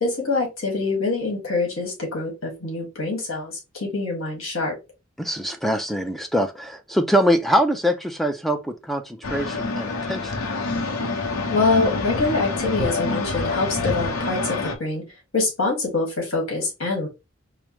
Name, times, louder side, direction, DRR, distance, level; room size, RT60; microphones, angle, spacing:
voice 1, 0.0-4.7 11.5-15.0 15.3-17.1, left 3 dB, 70° left, 1.7 m, -25 dB
voice 2, 5.2-10.4, equal, ahead, 0.4 m, -23 dB
sound 1, 9.2-14.8, left 3 dB, 90° left, 0.7 m, -27 dB
4.8 x 2.0 x 3.0 m
head